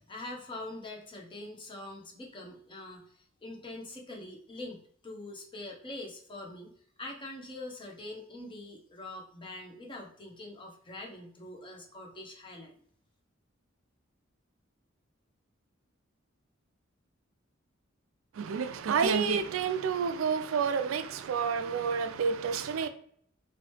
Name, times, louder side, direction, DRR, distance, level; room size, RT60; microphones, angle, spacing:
voice 1, 0.0-6.7 7.0-12.8, left 2 dB, 25° left, 0.7 m, -44 dB
voice 2, 18.4-22.9, right 6 dB, 85° right, 0.4 m, -29 dB
3.1 x 2.9 x 3.1 m
head